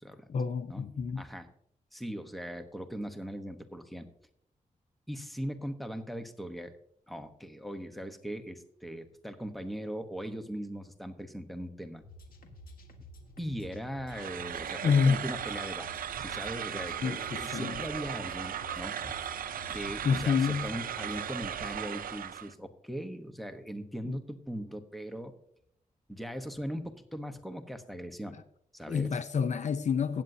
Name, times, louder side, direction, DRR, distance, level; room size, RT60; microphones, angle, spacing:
voice 1, 0.3-1.2 14.8-15.2 17.0-17.8 20.0-20.7 28.9-30.2, left 6 dB, 55° left, 0.6 m, -28 dB
voice 2, 1.2-1.5 1.9-4.1 5.1-6.7 7.1-12.0 13.4-15.9 16.2-19.1 19.7-25.4 26.1-28.4 28.7-29.2, equal, ahead, 0.9 m, -39 dB
sound 1, 12.0-21.3, left 1 dB, 90° left, 1.6 m, -51 dB
sound 2, 14.1-22.5, right 9 dB, 80° right, 0.5 m, -37 dB
15.5 x 9.0 x 2.7 m
wide cardioid pair, 145°, 15 cm